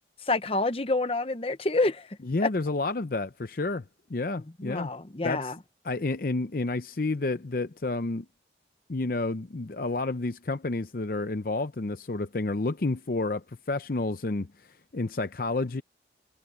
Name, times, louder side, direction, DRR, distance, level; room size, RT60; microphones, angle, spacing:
voice 1, 0.2-2.1 2.4-2.5 4.6-5.6, left 2 dB, 30° left, 0.9 m, -27 dB
voice 2, 2.3-3.8 4.1-4.9 5.2-5.5 5.8-8.3 8.9-14.5 14.9-15.8, left 2 dB, 50° left, 0.6 m, -30 dB
head